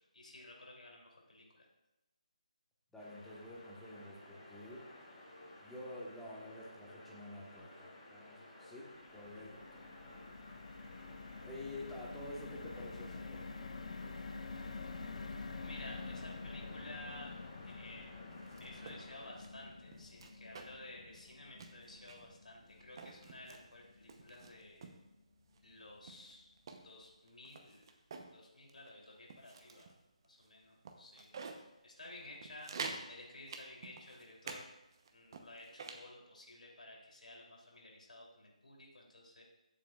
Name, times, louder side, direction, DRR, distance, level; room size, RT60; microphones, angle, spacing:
voice 1, 0.1-1.7 15.6-17.4 17.7-18.1 18.6-24.9 25.6-26.5 26.8-27.9 28.3-29.9 30.2-31.4 31.8-34.6 35.1-39.4, left 2 dB, 80° left, -2 dB, 3.1 m, -54 dB
voice 2, 2.9-4.9 5.6-9.9 11.4-13.5, left 1 dB, 5° left, -5 dB, 1.2 m, -49 dB
sound 1, 3.0-19.3, left 1 dB, 20° left, 2.9 m, -56 dB
sound 2, 8.9-25.2 25.6-25.8 26.0-26.3, left 4 dB, 60° left, 0.7 m, -48 dB
sound 3, 18.3-19.0 19.4-19.5 19.9-20.9 21.2-21.3 21.6-22.3 22.8-23.6 24.1-25.0 25.5-25.6 26.1-28.3 28.7-28.9 29.3-29.9 30.4-30.5 30.8-31.6 32.0-32.1 32.4-33.1 33.5-34.6 34.9-36.1, right 4 dB, 35° right, 0.8 m, -48 dB
13.5 x 7.4 x 2.4 m, 0.96 s
figure-of-eight pair, 165°, 4 cm